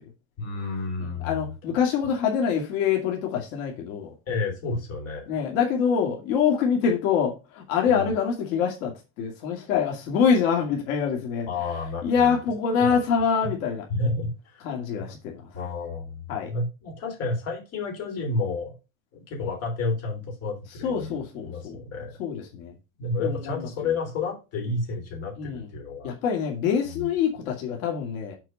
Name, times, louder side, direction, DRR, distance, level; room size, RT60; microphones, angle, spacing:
voice 1, 0.4-1.5 4.3-5.4 7.9-8.1 11.5-12.4 12.8-13.0 13.4-13.5 13.9-14.6 15.0-15.1 15.5-18.7 19.1-22.2 23.0-26.1 26.9-27.1, left 3 dB, 35° left, 3.4 m, -31 dB
voice 2, 1.0-4.1 5.3-11.5 12.0-13.8 14.6-15.4 16.3-16.5 20.8-21.8 22.2-22.7 23.2-23.7 25.4-25.7 26.0-28.4, left 7 dB, 80° left, 2.5 m, -25 dB
7.8 x 4.5 x 5.3 m
cardioid pair, 170°, 40 cm